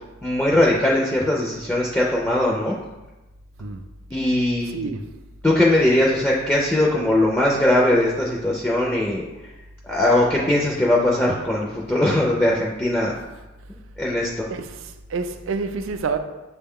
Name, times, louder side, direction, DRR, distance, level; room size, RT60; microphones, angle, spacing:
voice 1, 0.2-2.8 4.1-4.9 5.4-9.3 9.8-13.1 14.0-14.5, left 1 dB, 10° left, 0.4 m, -20 dB
voice 2, 4.7-5.1 14.5-16.2, right 4 dB, 70° right, 0.4 m, -28 dB
6.5 x 2.2 x 3.6 m
head